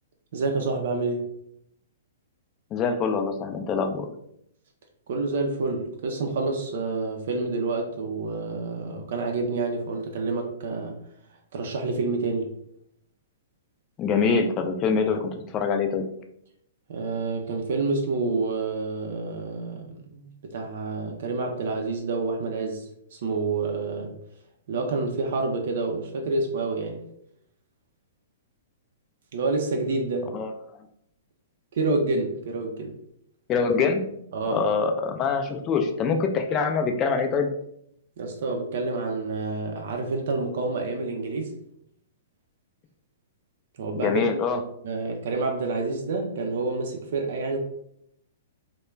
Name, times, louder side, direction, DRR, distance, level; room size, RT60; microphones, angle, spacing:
voice 1, 0.3-1.3 5.1-11.0 11.5-12.6 16.9-24.1 24.7-27.0 29.3-30.3 31.7-33.0 34.3-34.7 38.2-41.5 43.8-44.2 44.5-47.6, right 3 dB, 65° right, 0.4 m, -28 dB
voice 2, 2.7-4.1 14.0-16.1 30.3-30.5 33.5-34.0 34.5-37.5 43.9-44.6, left 5 dB, 25° left, 0.3 m, -24 dB
2.3 x 2.1 x 3.1 m
hypercardioid pair, 135°, 0 cm